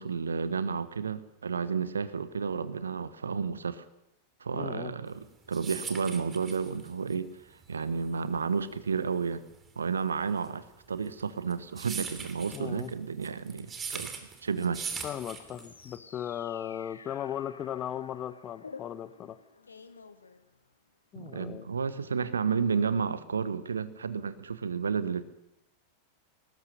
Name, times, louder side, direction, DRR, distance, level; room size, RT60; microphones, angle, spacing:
voice 1, 0.0-3.8 4.4-7.3 7.7-9.4 9.8-14.1 14.4-14.9 21.2-25.2, right 5 dB, 70° right, 14 dB, 1.2 m, -31 dB
voice 2, 4.5-4.9 12.5-12.9 15.0-19.4 21.1-21.7, left 10 dB, 30° left, 15 dB, 1.1 m, -37 dB
sound 1, 5.2-15.9, right 6 dB, 20° right, 3.0 m, -41 dB
sound 2, 15.3-20.9, left 5 dB, 75° left, 1.3 m, -51 dB
22.5 x 19.0 x 6.6 m, 0.86 s
figure-of-eight pair, 90°, 0 cm